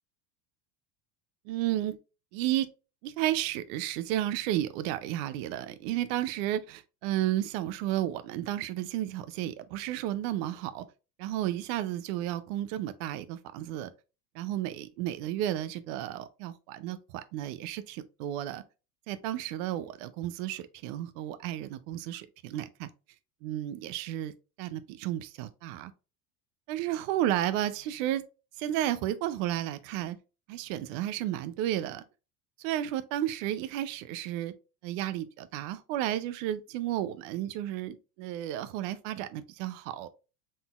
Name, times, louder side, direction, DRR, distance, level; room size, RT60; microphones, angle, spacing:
voice 1, 1.5-2.0 2.3-2.7 3.0-10.9 11.2-13.9 14.3-18.6 19.1-22.9 23.4-24.3 24.6-25.9 26.7-28.2 28.6-30.2 30.5-32.0 32.6-34.5 34.8-40.1, right 13 dB, 55° right, 0.5 m, -32 dB
4.0 x 3.8 x 2.3 m
supercardioid pair, 150°, 48 cm